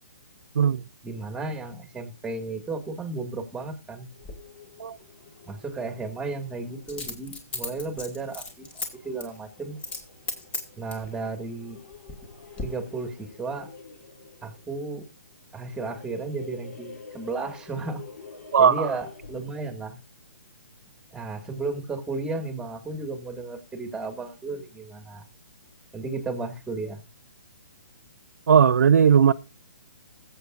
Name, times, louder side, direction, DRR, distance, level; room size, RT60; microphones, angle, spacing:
voice 1, 1.0-4.1 5.5-8.7 9.0-9.8 10.8-11.8 12.6-13.7 14.4-15.0 15.5-18.0 18.6-20.0 21.1-25.3 25.9-27.0, right 3 dB, 5° right, 2.0 m, -34 dB
sound 1, 4.1-19.8, left 4 dB, 70° left, 6.4 m, -49 dB
Coin (dropping), 4.2-4.4 6.9-8.9 9.2-9.4 9.8-10.0 10.3-11.1 11.7-12.3 12.6-12.7, left 3 dB, 15° left, 2.1 m, -34 dB
voice 2, 18.5-18.9 28.5-29.3, right 7 dB, 70° right, 0.6 m, -17 dB
20.5 x 8.0 x 2.5 m
hypercardioid pair, 145°, 9 cm